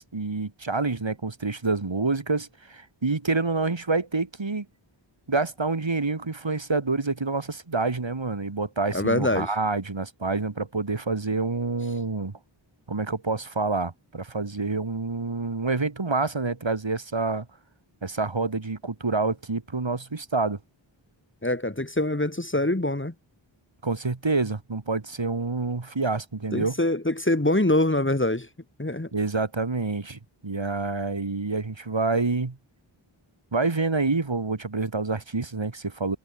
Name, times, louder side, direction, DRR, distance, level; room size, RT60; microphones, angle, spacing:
voice 1, 0.0-4.7 5.3-12.3 12.9-17.5 18.0-20.6 23.8-26.8 29.1-32.6 33.5-36.2, right 3 dB, 65° right, 7.8 m, -27 dB
voice 2, 8.9-9.5 21.4-23.1 26.5-28.5 28.8-29.1, left 1 dB, 25° left, 4.7 m, -24 dB
wide cardioid pair, 65°, 48 cm